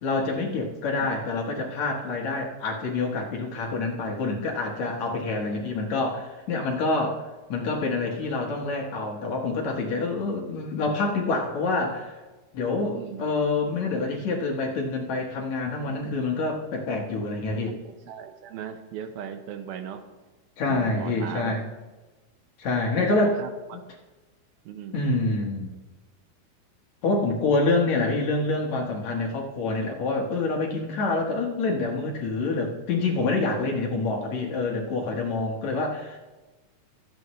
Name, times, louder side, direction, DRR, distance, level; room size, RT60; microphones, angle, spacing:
voice 1, 0.0-7.2 7.5-12.1 12.5-17.8 20.6-21.6 22.6-23.4 23.7-23.8 24.9-25.7 27.0-36.2, left 3 dB, 60° left, 0 dB, 2.3 m, -27 dB
voice 2, 12.9-13.3 17.8-20.0 20.7-21.7 22.9-23.8 24.6-25.1 33.5-33.9, right 8 dB, 85° right, 7 dB, 2.8 m, -38 dB
22.5 x 8.5 x 3.2 m, 1.2 s
omnidirectional pair, 4.2 m